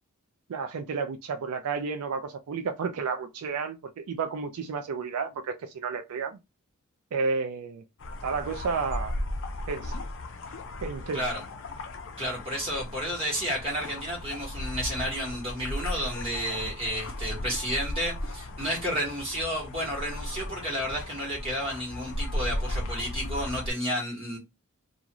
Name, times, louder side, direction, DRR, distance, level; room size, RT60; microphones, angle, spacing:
voice 1, 0.5-6.4 7.1-7.8 8.2-9.2 9.7-10.0 10.8-11.3, right 5 dB, 80° right, 0.4 m, -31 dB
sound 1, 8.0-23.7, left 1 dB, 60° left, 0.5 m, -36 dB
voice 2, 12.2-24.4, equal, 25° right, 1.3 m, -31 dB
2.5 x 2.4 x 2.9 m
head